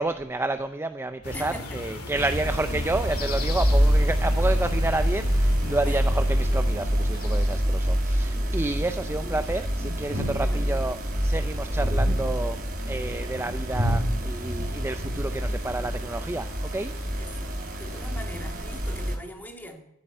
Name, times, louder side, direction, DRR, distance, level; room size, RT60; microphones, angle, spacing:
voice 1, 0.0-12.6 12.9-16.9 17.8-17.9, right 2 dB, 10° right, 9 dB, 0.4 m, -30 dB
sound 1, 1.2-7.6, left 2 dB, 85° left, 2.2 m, -37 dB
voice 2, 1.3-1.8 5.9-6.0 9.2-9.5 10.3-10.9 17.2-19.8, left 1 dB, 10° left, 3 dB, 1.9 m, -42 dB
sound 2, 2.1-19.2, equal, 45° right, 3.6 m, -26 dB
13.5 x 7.6 x 9.2 m, 0.86 s
head